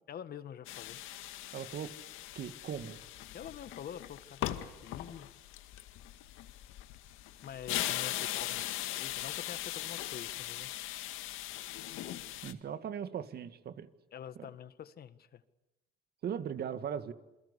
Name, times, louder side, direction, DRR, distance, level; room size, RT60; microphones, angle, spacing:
voice 1, 0.1-1.0 3.3-5.3 7.4-8.7 8.9-10.7 14.1-15.4, left 9 dB, 50° left, 13 dB, 1.7 m, -46 dB
sound 1, 0.7-12.5, left 14 dB, 80° left, 2.0 m, -40 dB
voice 2, 1.5-1.9 2.4-3.0 12.4-13.9 14.4-14.5 16.2-17.1, right 8 dB, 50° right, 11 dB, 2.1 m, -38 dB
28.0 x 23.0 x 8.4 m, 1.0 s
cardioid pair, 105°, 20 cm